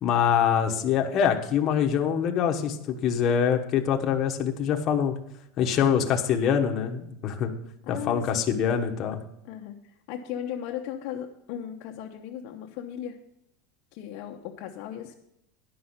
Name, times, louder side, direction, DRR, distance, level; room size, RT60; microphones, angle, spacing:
voice 1, 0.0-5.1 5.6-7.5 7.9-9.2, left 8 dB, 30° left, 3 dB, 1.1 m, -24 dB
voice 2, 7.9-8.5 9.4-13.2 13.9-15.1, left 10 dB, 45° left, 1 dB, 0.8 m, -37 dB
11.0 x 5.7 x 7.9 m, 0.77 s
supercardioid pair, 175°, 0 cm